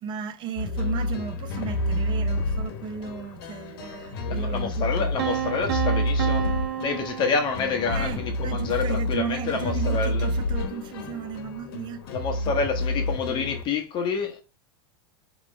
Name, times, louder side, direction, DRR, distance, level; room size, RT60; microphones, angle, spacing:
voice 1, 0.0-5.1 7.9-12.0, right 8 dB, 35° right, 0.8 m, -35 dB
sound 1, 0.6-13.6, left 1 dB, 70° left, 1.1 m, -29 dB
voice 2, 4.3-6.5 6.8-10.3 12.1-14.4, left 5 dB, 35° left, 1.0 m, -28 dB
sound 2, 5.2-8.1, right 11 dB, 70° right, 0.7 m, -30 dB
5.0 x 3.1 x 3.2 m
hypercardioid pair, 115°, 13 cm